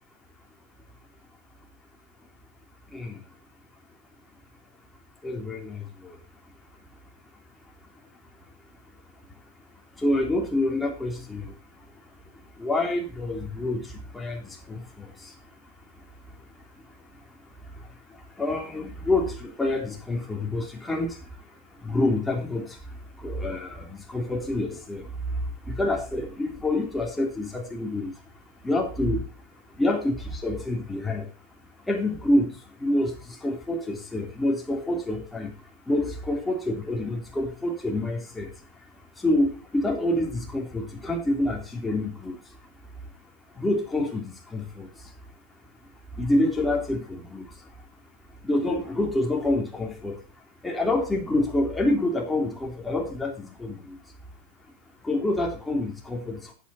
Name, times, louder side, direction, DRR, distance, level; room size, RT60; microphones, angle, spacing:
voice 1, 5.2-6.1 10.0-11.4 12.6-13.8 14.1-14.4 14.7-15.0 18.4-21.2 21.8-22.7 23.2-25.1 25.7-28.1 28.6-29.2 29.8-31.2 31.9-32.5 32.8-35.5 35.9-38.5 39.2-42.3 43.6-44.9 46.2-47.4 48.4-50.1 50.6-53.9 55.0-56.5, left 1 dB, 10° left, 1 dB, 3.1 m, -27 dB
10.0 x 8.8 x 4.2 m, 0.33 s
hypercardioid pair, 125°, 0 cm